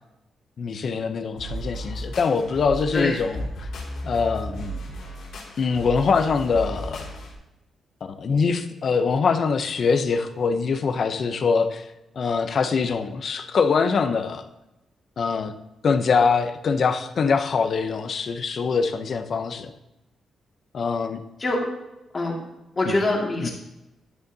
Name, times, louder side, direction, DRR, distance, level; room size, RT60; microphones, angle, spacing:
voice 1, 0.6-3.7 4.0-4.8 5.6-7.1 8.0-11.9 12.2-14.5 15.2-15.5 15.8-19.7 20.7-21.2 22.8-23.0 23.4-23.5, left 5 dB, 50° left, 8 dB, 0.6 m, -23 dB
sound 1, 1.4-7.4, right 1 dB, 90° left, 2.0 m, -35 dB
voice 2, 22.8-23.5, left 2 dB, 30° left, -1 dB, 2.0 m, -24 dB
10.5 x 6.6 x 2.7 m, 0.95 s
cardioid pair, 125°, 0 cm